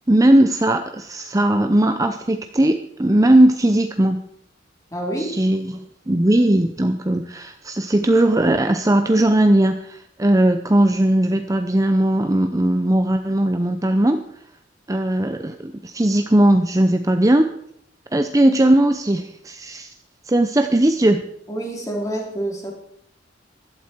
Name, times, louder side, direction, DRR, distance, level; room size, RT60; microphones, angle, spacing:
voice 1, 0.1-4.2 5.2-14.2 14.9-17.5 18.1-19.9 20.3-21.2, right 1 dB, 20° right, 7 dB, 0.7 m, -18 dB
voice 2, 4.9-5.3 21.5-22.7, right 1 dB, 20° left, 0 dB, 3.6 m, -27 dB
16.0 x 12.0 x 4.6 m, 0.70 s
head